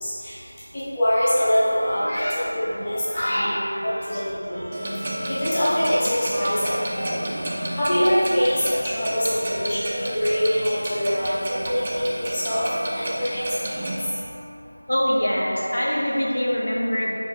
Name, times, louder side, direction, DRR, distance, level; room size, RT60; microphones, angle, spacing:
voice 1, 0.0-0.3 0.7-3.5 4.1-4.6 5.3-7.3 7.7-12.6 12.9-13.8, equal, 15° left, -13 dB, 0.8 m, -24 dB
Bowed string instrument, 1.3-15.2, equal, 85° right, 0.5 m, -38 dB
voice 2, 2.1-2.4 3.1-3.6 4.0-4.2 6.3-6.5 7.0-7.4 9.4-9.5 10.1-10.2 11.0-11.1 11.6-11.7 14.9-17.2, equal, 60° left, -3 dB, 0.5 m, -25 dB
Clock, 4.7-13.9, right 1 dB, 25° right, 0.3 m, -31 dB
4.2 x 2.9 x 3.4 m, 2.8 s
figure-of-eight pair, 175°, 0 cm